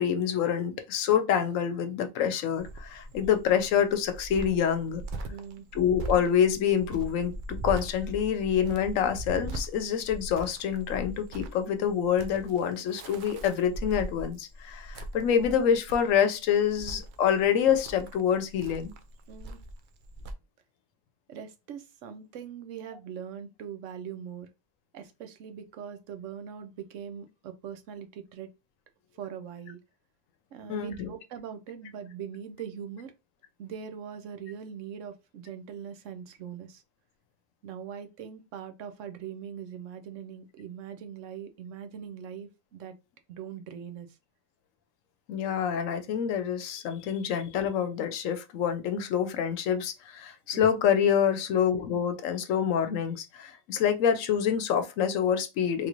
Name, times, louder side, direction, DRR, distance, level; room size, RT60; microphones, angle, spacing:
voice 1, 0.0-5.0 5.7-18.9 30.7-31.1 45.3-55.9, left 8 dB, 85° left, 1.0 m, -26 dB
Cricket, 2.6-20.3, right 1 dB, 65° right, 0.5 m, -40 dB
voice 2, 5.3-5.6 19.3-19.6 21.3-24.5 24.9-28.5 29.2-29.8 30.5-33.1 33.6-36.8 37.6-42.9 43.3-44.1 50.5-50.8, right 8 dB, 80° right, 0.9 m, -41 dB
3.5 x 3.0 x 2.5 m
omnidirectional pair, 1.3 m